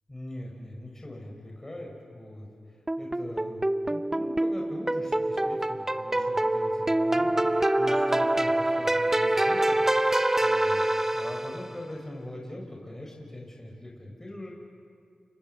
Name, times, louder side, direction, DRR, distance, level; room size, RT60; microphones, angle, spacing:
voice 1, 0.1-2.5 3.0-10.8 11.1-14.5, left 1 dB, 20° left, -1 dB, 5.9 m, -42 dB
sound 1, 2.9-11.8, right 1 dB, 15° right, 0.6 m, -26 dB
29.0 x 24.0 x 7.2 m, 2.3 s
cardioid pair, 50°, 2 cm